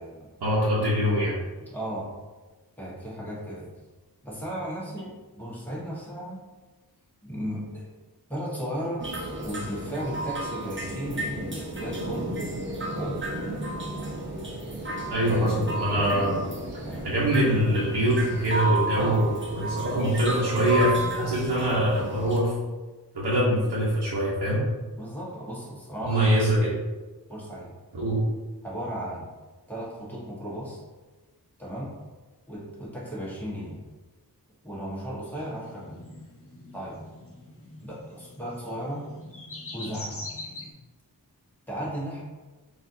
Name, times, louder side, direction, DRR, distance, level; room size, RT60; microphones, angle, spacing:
voice 1, 0.4-1.4 15.1-16.3 16.7-22.5 23.1-24.6 26.0-26.7 27.9-28.2, equal, 75° right, -8 dB, 1.0 m, -24 dB
voice 2, 1.7-2.1 2.8-3.7 4.2-6.4 7.2-7.9 8.3-9.0 9.4-11.4 11.7-12.3 12.9-13.2 15.2-15.5 15.9-16.2 16.8-17.0 18.9-19.2 25.0-26.4 27.3-27.7 28.6-29.3 29.7-30.8 31.6-31.9 32.5-33.8 34.6-36.0 36.7-37.0 37.8-39.0 39.7-40.2 41.7-42.2, equal, 5° left, -7 dB, 1.5 m, -35 dB
sound 1, 9.0-22.4, right 1 dB, 30° right, 0.9 m, -32 dB
sound 2, 35.4-40.7, left 2 dB, 35° left, 0.8 m, -43 dB
4.2 x 2.7 x 2.7 m, 1.2 s
wide cardioid pair, 55°, 40 cm